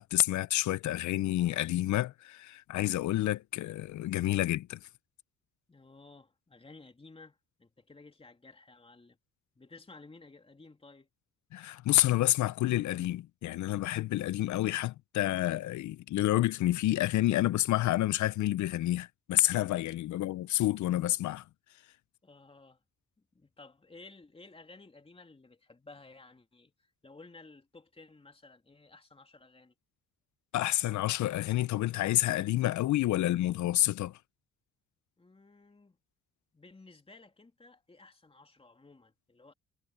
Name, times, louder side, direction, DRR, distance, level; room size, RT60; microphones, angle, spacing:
voice 1, 0.0-4.8 11.5-21.4 30.5-34.2, left 15 dB, 70° left, 0.6 m, -29 dB
voice 2, 5.7-9.2 9.5-11.1 20.1-20.2 22.2-22.8 23.2-29.7 35.2-36.0 36.5-39.5, left 3 dB, 20° left, 3.2 m, -55 dB
cardioid pair, 90°, 30 cm